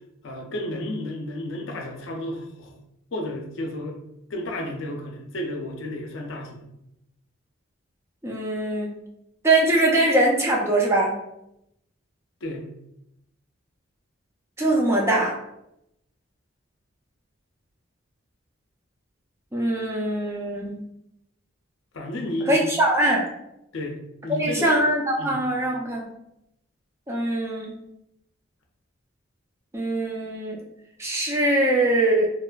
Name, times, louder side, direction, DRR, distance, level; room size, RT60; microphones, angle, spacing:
voice 1, 0.2-2.7 3.1-4.0 4.3-6.7 12.4-12.7 21.9-22.6 23.7-24.0 24.2-24.7 25.2-25.4, left 1 dB, 70° left, 2 dB, 0.5 m, -32 dB
voice 2, 8.2-8.9 9.4-11.2 14.6-15.3 19.5-20.8 22.5-23.2 24.4-26.1 27.1-27.8 29.7-30.6 31.0-32.3, right 1 dB, 15° right, -2 dB, 0.3 m, -22 dB
2.8 x 2.4 x 2.2 m, 0.83 s
head